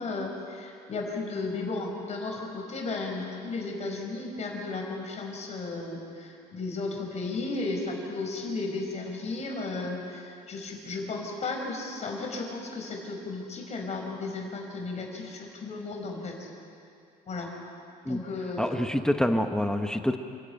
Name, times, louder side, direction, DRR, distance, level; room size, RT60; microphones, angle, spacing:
voice 1, 0.0-16.5 17.3-17.5 18.0-18.8, left 3 dB, 40° left, 1 dB, 4.7 m, -34 dB
voice 2, 18.6-20.2, left 1 dB, 5° left, 6 dB, 1.0 m, -26 dB
27.5 x 11.5 x 9.1 m, 2.5 s
cardioid pair, 110°, 17 cm